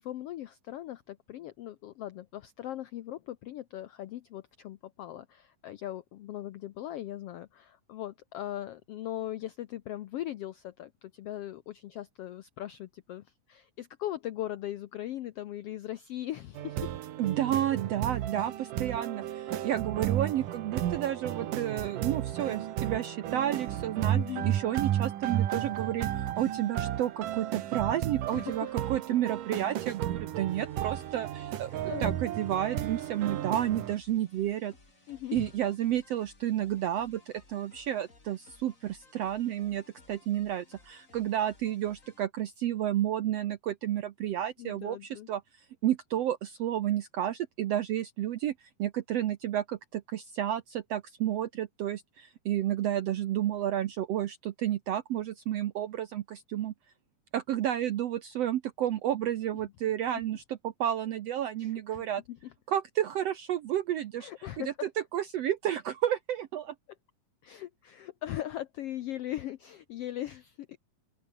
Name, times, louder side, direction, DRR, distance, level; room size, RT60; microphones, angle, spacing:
voice 1, 0.0-16.9 24.1-24.5 28.3-28.9 31.9-32.1 35.1-35.5 44.6-45.3 60.1-60.2 61.6-62.5 64.2-64.9 67.4-70.8, left 13 dB, 85° left, 1.3 m, -39 dB
sound 1, 16.6-34.0, right 12 dB, 85° right, 3.0 m, -33 dB
voice 2, 17.2-24.2 24.5-34.7 35.3-45.4 45.8-56.7 57.3-62.2 62.7-64.3 64.6-64.7 65.1-66.8, right 11 dB, 70° right, 1.7 m, -31 dB
sound 2, 30.5-42.3, left 3 dB, 25° left, 4.1 m, -60 dB
open air
omnidirectional pair, 3.7 m